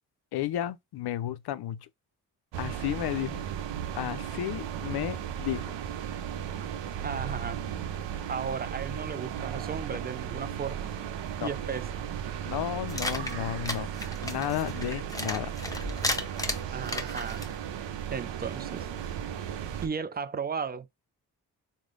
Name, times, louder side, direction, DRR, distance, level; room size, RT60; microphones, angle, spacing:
voice 1, 0.3-1.9 2.6-3.4 3.9-5.8 11.4-11.5 12.5-13.9 14.2-15.5, left 12 dB, 65° left, 0.5 m, -33 dB
sound 1, 2.5-19.9, right 9 dB, 80° right, 0.6 m, -36 dB
voice 2, 7.0-7.6 8.3-10.9 11.4-11.9 16.7-17.4 18.1-18.9 19.8-20.9, right 6 dB, 25° right, 0.4 m, -35 dB
sound 2, 12.9-17.6, left 1 dB, 10° left, 0.8 m, -34 dB
3.2 x 2.2 x 3.7 m
supercardioid pair, 50°, 43 cm